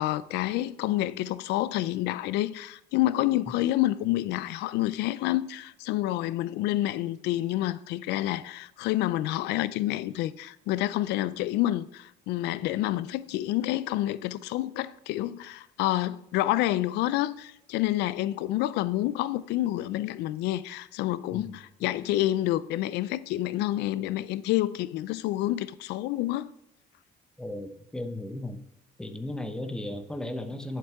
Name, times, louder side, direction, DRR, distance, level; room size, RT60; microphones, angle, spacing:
voice 1, 0.0-26.5, left 15 dB, 90° left, 0.5 m, -28 dB
voice 2, 27.4-28.6 29.0-30.8, left 1 dB, 5° left, 0.9 m, -35 dB
10.5 x 7.6 x 3.6 m
cardioid pair, 110°, 17 cm